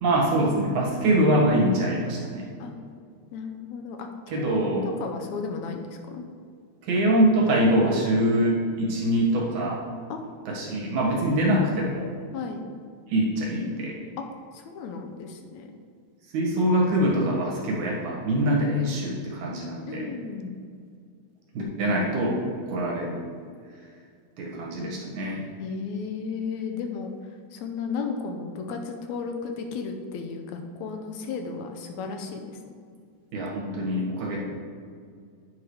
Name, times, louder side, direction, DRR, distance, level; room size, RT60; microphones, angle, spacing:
voice 1, 0.0-2.5 4.3-4.9 6.8-9.8 10.5-12.1 13.1-14.0 16.3-20.1 21.5-22.4 22.7-23.2 24.4-25.4 33.3-34.4, right 1 dB, 75° right, -3 dB, 3.0 m, -24 dB
voice 2, 3.3-6.2 10.1-10.2 12.3-12.6 14.5-15.7 19.9-20.6 25.6-27.1 27.5-32.6, left 5 dB, 75° left, 4 dB, 1.9 m, -34 dB
9.5 x 5.0 x 4.8 m, 2.2 s
omnidirectional pair, 3.4 m